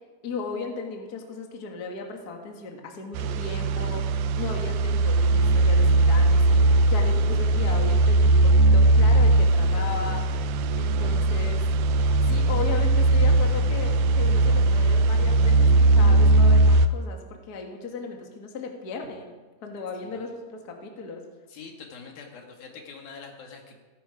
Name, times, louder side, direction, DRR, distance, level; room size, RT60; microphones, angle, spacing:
voice 1, 0.2-11.6 12.3-19.3 19.6-21.2, left 4 dB, 35° left, 2 dB, 1.6 m, -36 dB
sound 1, 3.1-16.9, right 2 dB, 85° right, 1.6 m, -19 dB
voice 2, 21.5-23.8, left 5 dB, 75° left, 1 dB, 3.9 m, -44 dB
17.0 x 14.5 x 5.0 m, 1.3 s
omnidirectional pair, 4.3 m